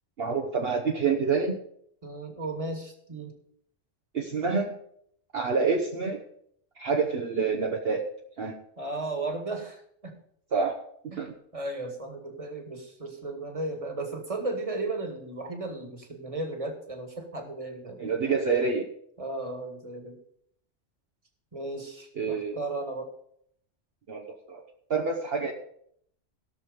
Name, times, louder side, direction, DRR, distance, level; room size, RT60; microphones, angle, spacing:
voice 1, 0.2-1.6 4.1-4.7 5.3-6.2 6.8-8.0 8.4-8.5 10.5-10.8 11.0-11.3 18.0-18.9 22.2-22.6 24.1-24.6 24.9-25.5, right 5 dB, 55° right, 0 dB, 1.3 m, -27 dB
voice 2, 2.0-3.3 8.8-10.1 11.1-11.2 11.5-18.1 19.2-20.2 21.5-23.1, right 2 dB, 30° right, 4 dB, 1.9 m, -35 dB
17.0 x 6.4 x 5.2 m, 0.68 s
omnidirectional pair, 1.3 m